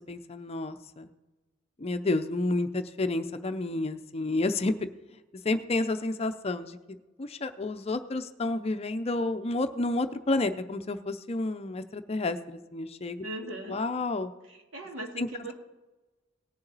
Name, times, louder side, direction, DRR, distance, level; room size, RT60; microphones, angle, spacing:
voice 1, 0.1-1.1 1.8-4.9 5.4-13.2 13.7-14.3 15.2-15.3, left 2 dB, 30° left, 9 dB, 0.5 m, -30 dB
voice 2, 13.2-13.8 14.4-15.5, right 2 dB, 85° right, 1 dB, 2.2 m, -39 dB
18.5 x 6.9 x 4.0 m, 1.1 s
head